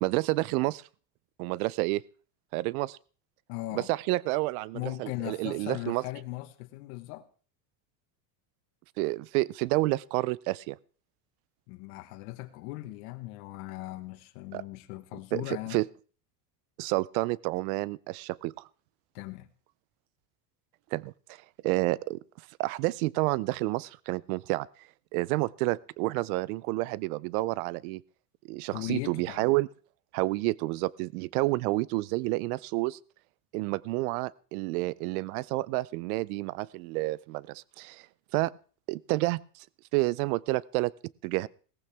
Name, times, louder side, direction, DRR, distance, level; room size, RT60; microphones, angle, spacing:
voice 1, 0.0-0.8 1.4-2.0 2.5-3.0 3.7-6.0 9.0-10.8 14.5-14.6 15.3-15.9 16.8-18.5 20.9-21.1 21.6-22.2 22.6-24.7 25.1-28.0 28.5-29.7 30.1-33.0 33.5-38.0 38.3-38.5 38.9-39.4 39.9-40.9 41.2-41.5, right 20 dB, 60° right, 23 dB, 0.6 m, -29 dB
voice 2, 3.5-3.9 4.7-7.3 11.7-15.8 19.1-19.5 28.7-29.5, left 18 dB, 65° left, 8 dB, 1.4 m, -38 dB
18.0 x 14.5 x 3.5 m, 0.40 s
cardioid pair, 175°, 50 cm